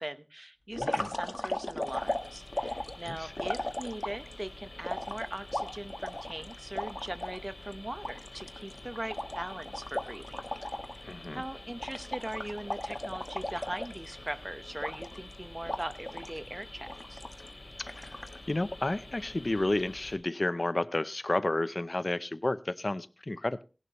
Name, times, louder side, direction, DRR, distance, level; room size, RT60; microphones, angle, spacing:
voice 1, 0.0-10.4 11.0-17.2, right 1 dB, 30° right, 11 dB, 0.9 m, -40 dB
sound 1, 0.7-4.3 4.8-7.4 7.7-7.8 8.0-11.0 11.2-11.5 11.8-14.3 14.8-15.3 15.7-16.4 16.9-17.5 17.9-18.4, left 1 dB, 35° left, 1.2 m, -36 dB
sound 2, 1.8-20.2, left 2 dB, 80° left, 3.9 m, -48 dB
voice 2, 11.1-11.4 17.8-18.2 18.5-23.6, left 2 dB, 60° left, 15 dB, 0.5 m, -31 dB
17.5 x 11.0 x 3.0 m, 0.33 s
wide cardioid pair, 45°, 0 cm